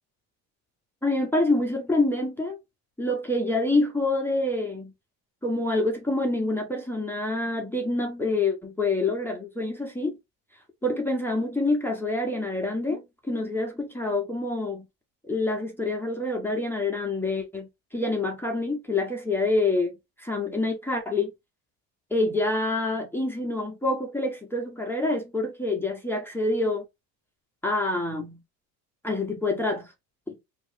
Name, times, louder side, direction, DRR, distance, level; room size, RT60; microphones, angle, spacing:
voice 1, 1.0-2.6 3.0-4.9 5.4-10.2 10.8-14.8 15.2-21.3 22.1-26.8 27.6-28.4 29.0-29.9 30.3-30.4, left 2 dB, 5° left, 0.9 m, -27 dB
3.0 x 2.6 x 3.4 m
supercardioid pair, 85°, 44 cm